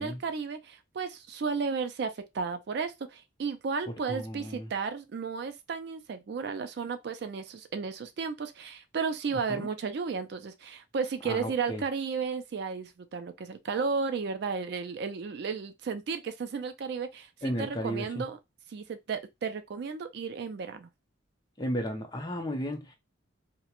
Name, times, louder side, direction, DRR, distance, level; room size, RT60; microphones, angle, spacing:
voice 1, 0.0-18.4 18.7-20.9, right 5 dB, 55° right, 0.3 m, -33 dB
voice 2, 4.1-4.7 9.5-9.7 11.2-11.8 17.4-18.2 21.6-22.9, equal, 20° left, 0.5 m, -34 dB
2.3 x 2.1 x 2.9 m
head